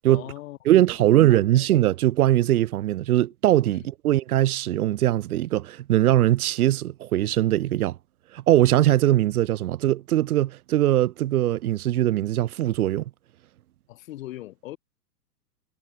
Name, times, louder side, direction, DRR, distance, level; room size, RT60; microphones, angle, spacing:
voice 1, 0.1-1.7 3.7-3.9 13.9-14.8, left 15 dB, 55° left, 5.1 m, -41 dB
voice 2, 0.7-8.0 8.3-13.0, right 14 dB, 65° right, 0.9 m, -21 dB
hypercardioid pair, 130°, 48 cm